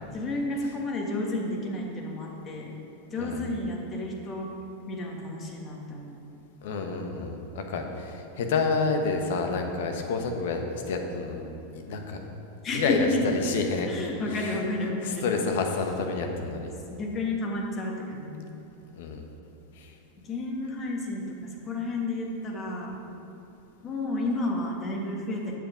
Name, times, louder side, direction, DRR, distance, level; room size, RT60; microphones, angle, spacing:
voice 1, 0.1-2.7 3.1-4.5 4.9-6.2 12.6-13.3 13.8-15.2 16.8-18.5 20.2-21.2 21.7-22.9 23.8-25.5, left 2 dB, 30° left, 0 dB, 1.7 m, -31 dB
voice 2, 6.6-11.4 11.7-12.2 12.7-13.9 14.3-14.6 15.1-16.7 19.0-19.2 19.8-19.9, left 4 dB, 65° left, 4 dB, 1.1 m, -29 dB
7.7 x 7.6 x 5.1 m, 2.9 s
hypercardioid pair, 100°, 0 cm